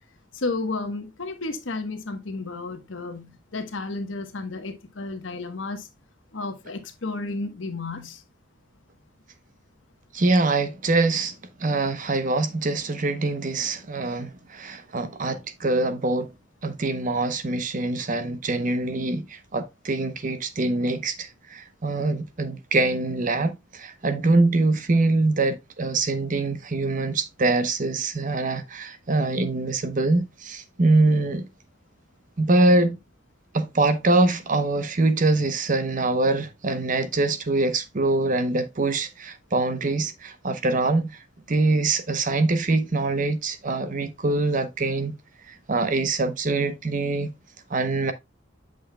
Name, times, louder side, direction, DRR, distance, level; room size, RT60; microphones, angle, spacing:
voice 1, 0.3-5.9 6.3-8.2, left 3 dB, 80° left, 1.1 m, -32 dB
voice 2, 10.1-11.3 11.6-16.3 16.6-19.2 19.5-31.4 32.4-33.0 33.5-41.1 41.5-45.1 45.7-47.3 47.7-48.1, right 2 dB, 45° right, 0.7 m, -24 dB
7.7 x 6.3 x 2.2 m
head